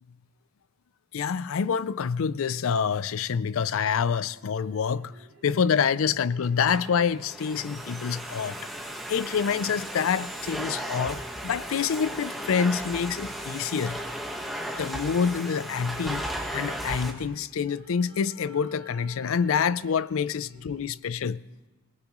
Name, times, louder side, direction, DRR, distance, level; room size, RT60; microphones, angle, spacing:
voice 1, 1.1-5.1 5.4-8.6 9.1-14.0 14.8-16.3 16.5-21.4, left 6 dB, 70° left, 0.4 m, -27 dB
sound 1, 4.1-11.7 13.6-21.0, right 2 dB, 50° right, 2.0 m, -54 dB
Domestic sounds home sounds, 6.4-17.1, equal, ahead, 1.3 m, -35 dB
22.0 x 19.5 x 3.1 m
head